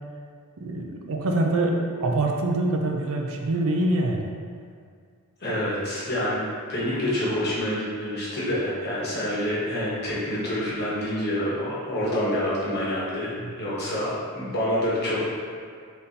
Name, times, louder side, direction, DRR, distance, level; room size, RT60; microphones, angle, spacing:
voice 1, 0.6-4.3 13.4-13.7, right 2 dB, 65° right, 1 dB, 0.5 m, -25 dB
voice 2, 5.4-13.3 13.6-15.4, left 1 dB, 50° left, -7 dB, 1.1 m, -27 dB
4.0 x 3.5 x 2.8 m, 2.1 s
head